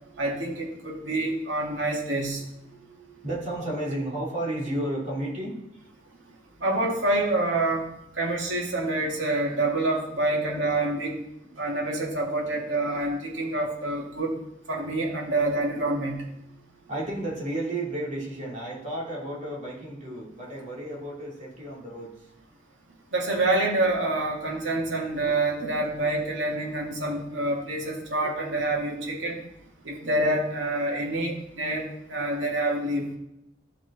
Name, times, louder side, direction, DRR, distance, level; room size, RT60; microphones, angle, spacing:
voice 1, 0.2-2.4 6.6-7.9 8.2-11.2 11.6-14.4 14.7-16.2 23.1-29.4 29.8-33.0, right 2 dB, 75° right, -2 dB, 2.4 m, -27 dB
voice 2, 2.6-5.9 11.6-11.7 16.8-22.3, right 1 dB, 40° right, -4 dB, 2.8 m, -33 dB
14.0 x 5.0 x 4.3 m, 0.83 s
head